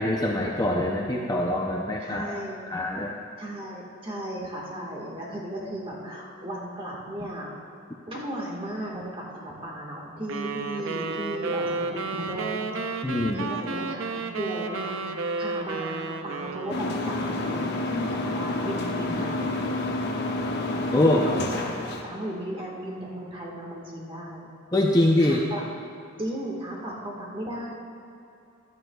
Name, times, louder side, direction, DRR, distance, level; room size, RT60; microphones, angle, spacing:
voice 1, 0.0-2.3 2.7-3.1 13.0-13.5 20.9-21.3 24.7-25.4, left 1 dB, 15° left, -1 dB, 0.5 m, -23 dB
voice 2, 2.0-2.6 3.4-7.6 8.1-13.0 13.3-19.6 21.2-21.7 22.0-24.5 25.2-25.6 26.2-27.7, right 1 dB, 25° right, -3 dB, 1.6 m, -35 dB
sound 1, 10.3-17.2, right 3 dB, 65° right, 0.6 m, -32 dB
sound 2, 16.7-22.0, left 2 dB, 50° left, 0.8 m, -29 dB
15.0 x 11.5 x 2.3 m, 2.7 s
head